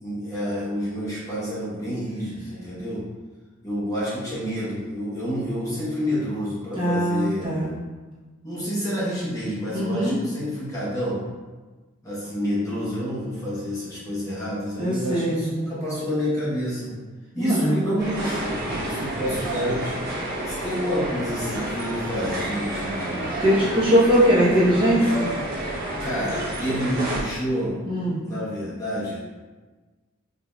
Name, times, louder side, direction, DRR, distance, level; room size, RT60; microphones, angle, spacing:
voice 1, 0.0-3.0 3.6-7.7 8.4-11.2 12.0-16.9 17.3-20.0 20.4-23.3 26.0-27.8 28.2-29.2, equal, 15° left, -10 dB, 1.1 m, -29 dB
voice 2, 6.7-7.7 9.7-10.2 14.8-15.4 17.4-17.8 23.4-25.3 27.8-28.2, equal, 25° right, -10 dB, 1.1 m, -20 dB
sound 1, 18.0-27.2, right 1 dB, 50° right, 1.2 m, -30 dB
4.8 x 2.8 x 2.4 m, 1.3 s
head